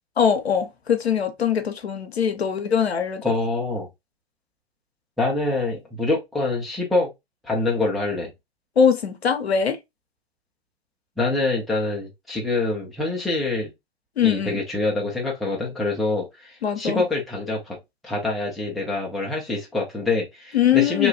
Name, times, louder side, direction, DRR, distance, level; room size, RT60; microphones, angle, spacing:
voice 1, 0.2-3.2 8.8-9.8 14.2-14.6 16.6-17.0 20.5-21.1, left 7 dB, 80° left, 0.7 m, -21 dB
voice 2, 3.2-3.9 5.2-7.1 7.4-8.3 11.2-13.7 14.2-17.8 18.0-21.1, left 3 dB, ahead, 0.4 m, -25 dB
2.9 x 2.2 x 2.6 m
figure-of-eight pair, 110°, 31 cm